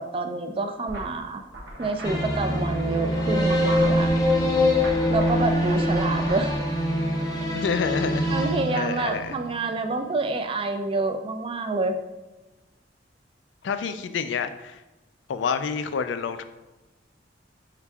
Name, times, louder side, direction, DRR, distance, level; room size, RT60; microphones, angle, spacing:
voice 1, 0.0-1.4 1.8-4.1 5.1-6.5 7.3-7.6 8.3-11.9, right 3 dB, 30° right, 6 dB, 0.4 m, -28 dB
sound 1, 0.9-6.6, right 1 dB, 75° right, 0.9 m, -40 dB
sound 2, 2.0-9.5, left 1 dB, 20° left, 0.7 m, -24 dB
voice 2, 7.5-9.4 13.6-14.8 15.3-16.4, left 6 dB, 90° left, 10 dB, 0.3 m, -28 dB
5.7 x 3.4 x 2.3 m, 1.1 s
head